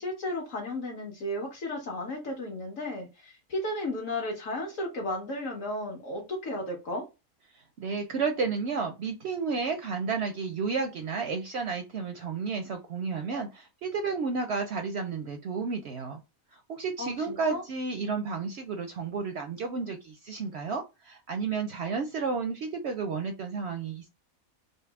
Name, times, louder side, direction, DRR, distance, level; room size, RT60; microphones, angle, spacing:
voice 1, 0.0-7.0 17.0-17.6, left 1 dB, 65° left, 1.6 m, -34 dB
voice 2, 7.8-16.2 16.5-24.1, right 5 dB, 65° right, 0.7 m, -32 dB
3.9 x 2.0 x 3.4 m
omnidirectional pair, 1.5 m